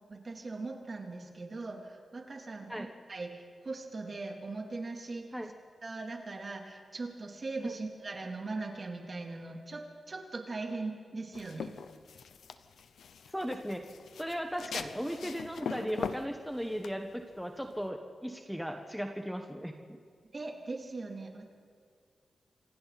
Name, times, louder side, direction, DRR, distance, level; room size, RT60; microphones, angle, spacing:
voice 1, 0.1-5.3 5.8-11.7 20.3-21.5, right 3 dB, 45° right, 1 dB, 3.4 m, -40 dB
sound 1, 11.3-17.9, left 6 dB, 90° left, 0.9 m, -42 dB
voice 2, 13.3-13.9 14.2-20.0, equal, ahead, 3 dB, 1.5 m, -37 dB
27.0 x 25.5 x 4.3 m, 2.1 s
cardioid pair, 75°, 0 cm